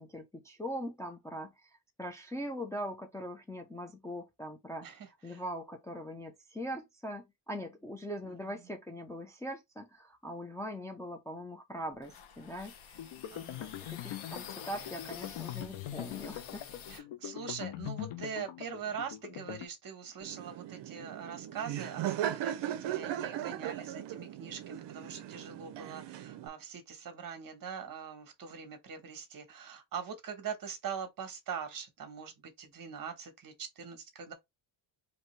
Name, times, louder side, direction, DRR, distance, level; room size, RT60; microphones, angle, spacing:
voice 1, 0.0-1.7 2.0-12.7 13.4-16.6, equal, 5° left, 0.6 m, -41 dB
sound 1, 12.0-17.0, left 7 dB, 90° left, 1.4 m, -48 dB
sound 2, 13.0-19.7, left 12 dB, 70° left, 0.9 m, -42 dB
voice 2, 13.3-13.7 16.9-34.3, right 7 dB, 45° right, 1.4 m, -42 dB
Laughter, 20.2-26.5, right 11 dB, 60° right, 0.7 m, -38 dB
4.5 x 2.8 x 3.2 m
cardioid pair, 130°, 47 cm